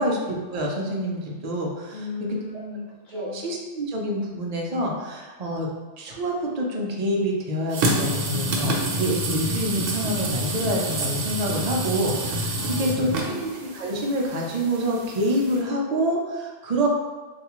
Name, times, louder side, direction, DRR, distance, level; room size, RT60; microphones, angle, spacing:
voice 1, 0.0-2.0 2.3-2.4 3.1-5.7 6.0-16.9, right 1 dB, 55° right, -1 dB, 0.4 m, -27 dB
voice 2, 1.9-3.4 12.6-13.5, left 4 dB, 45° left, -3 dB, 0.7 m, -36 dB
sound 1, 7.7-15.6, right 1 dB, 85° right, 0.9 m, -28 dB
3.4 x 2.4 x 2.9 m, 1.3 s
omnidirectional pair, 1.3 m